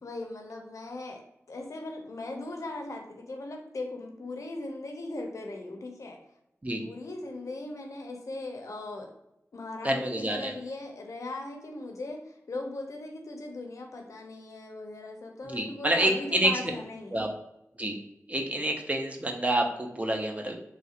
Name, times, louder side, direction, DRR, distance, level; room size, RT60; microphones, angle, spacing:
voice 1, 0.0-1.2 1.5-6.2 6.8-9.1 9.5-17.3, left 2 dB, 80° left, 3 dB, 0.5 m, -39 dB
voice 2, 9.8-10.5 15.4-16.5 17.1-17.3 17.8-18.0 18.3-20.6, right 1 dB, 25° right, 2 dB, 0.5 m, -28 dB
3.1 x 2.4 x 2.7 m, 0.84 s
wide cardioid pair, 70°, 5 cm